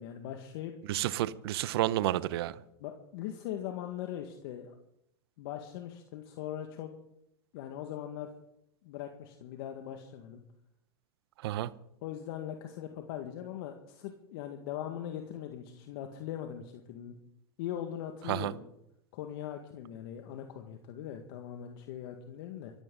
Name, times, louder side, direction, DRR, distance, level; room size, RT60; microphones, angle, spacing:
voice 1, 0.0-0.7 2.8-4.7 5.4-6.9 7.5-8.3 8.8-10.4 12.0-17.2 17.6-18.7 19.1-22.7, left 10 dB, 65° left, 4 dB, 1.9 m, -40 dB
voice 2, 0.9-2.6 11.4-11.7 18.3-18.5, right 14 dB, 70° right, 17 dB, 0.9 m, -30 dB
24.0 x 14.5 x 4.0 m, 0.79 s
hypercardioid pair, 100°, 13 cm